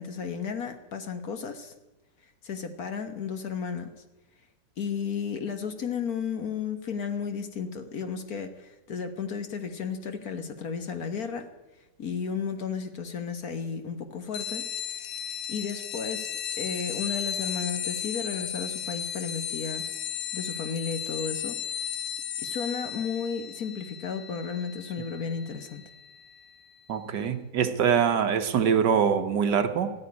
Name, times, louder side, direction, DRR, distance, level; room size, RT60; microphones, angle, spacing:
voice 1, 0.0-1.7 2.4-3.9 4.8-11.5 12.0-15.1 15.5-19.9 20.3-21.6 22.4-25.8, left 6 dB, 55° left, 8 dB, 1.6 m, -33 dB
sound 1, 14.3-26.4, left 9 dB, 90° left, 1.5 m, -35 dB
voice 2, 26.9-29.9, right 7 dB, 70° right, 8 dB, 1.7 m, -24 dB
14.5 x 10.0 x 9.6 m, 1.1 s
omnidirectional pair, 2.0 m